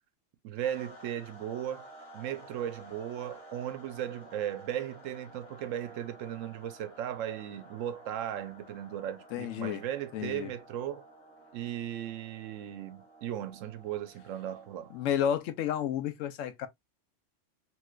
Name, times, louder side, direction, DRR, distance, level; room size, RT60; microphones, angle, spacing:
voice 1, 0.4-1.9 2.1-11.0 11.5-14.9, right 10 dB, 90° right, 1.0 m, -37 dB
sound 1, 0.6-15.4, right 1 dB, 45° left, 1.0 m, -53 dB
voice 2, 9.3-9.8 10.1-10.5 14.9-16.7, left 9 dB, 80° left, 1.0 m, -31 dB
3.1 x 3.0 x 2.3 m
omnidirectional pair, 1.3 m